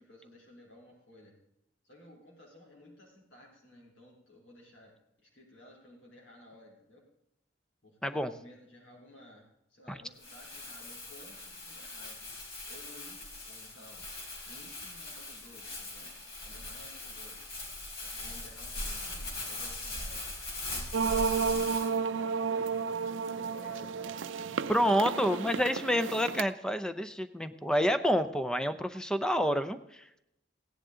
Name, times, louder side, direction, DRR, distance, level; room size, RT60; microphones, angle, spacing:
voice 1, 0.0-1.3 1.8-7.0 7.8-12.2 12.7-14.0 14.4-16.2 16.4-17.5 18.0-20.3 20.5-21.6 21.9-22.9 23.3-25.2, left 1 dB, 80° left, -3 dB, 4.0 m, -55 dB
Crumpling crinkling, 10.2-21.9, left 2 dB, 55° left, 3.6 m, -41 dB
sound 1, 20.9-26.4, right 5 dB, 85° right, 0.5 m, -32 dB
voice 2, 24.7-30.1, equal, 5° left, 10 dB, 0.6 m, -28 dB
16.0 x 10.5 x 3.8 m, 0.81 s
head